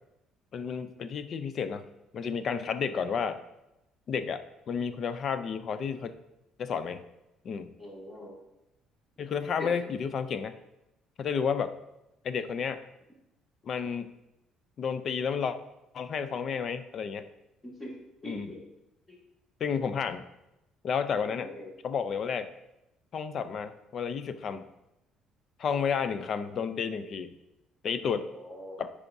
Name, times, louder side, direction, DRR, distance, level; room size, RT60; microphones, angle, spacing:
voice 1, 0.5-3.4 4.1-6.1 6.6-7.0 7.4-7.7 9.2-10.6 11.2-11.7 12.2-12.8 13.6-14.1 14.8-15.6 15.9-17.3 18.2-18.6 19.6-20.3 20.8-21.5 21.8-22.5 23.1-24.7 25.6-27.3 27.8-28.3 28.8-28.9, left 6 dB, 45° left, 11 dB, 0.4 m, -31 dB
voice 2, 7.8-8.3 9.6-9.7 17.8-17.9 18.2-18.6 21.2-21.7 28.2-28.8, left 1 dB, 20° left, -4 dB, 2.2 m, -42 dB
9.6 x 4.9 x 2.7 m, 0.90 s
cardioid pair, 130°, 0 cm